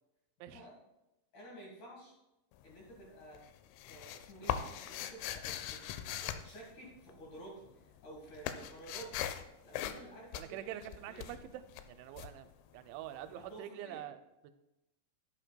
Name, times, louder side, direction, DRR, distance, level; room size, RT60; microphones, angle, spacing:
voice 1, 1.3-2.2 2.6-3.4 3.9-5.8 6.2-9.2 9.6-11.3 13.2-14.0, right 1 dB, 60° left, -3 dB, 2.3 m, -52 dB
sound 1, 2.5-3.1 3.3-7.4 7.7-13.3, left 10 dB, 85° left, 2.9 m, -41 dB
voice 2, 10.3-14.2 14.4-14.5, right 12 dB, 90° right, 10 dB, 2.9 m, -46 dB
11.5 x 8.3 x 2.2 m, 0.96 s
omnidirectional pair, 5.3 m